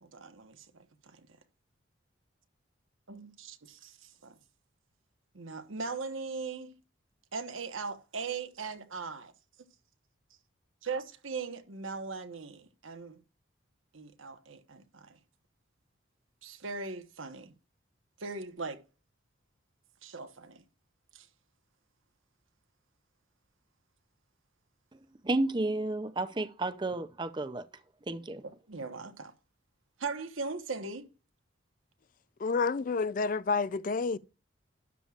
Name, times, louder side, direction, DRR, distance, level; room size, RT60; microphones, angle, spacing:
voice 1, 0.0-1.3 3.1-4.4 5.3-6.7 7.3-9.3 10.8-13.2 13.9-15.2 16.4-17.5 18.2-18.8 20.0-20.6 21.1-21.3 28.4-29.3 30.0-31.1, right 4 dB, 85° right, 1.2 m, -39 dB
voice 2, 25.2-27.6 28.1-28.4, right 2 dB, 25° right, 0.5 m, -31 dB
voice 3, 32.4-34.2, left 4 dB, 40° left, 0.4 m, -29 dB
12.5 x 8.6 x 2.4 m
head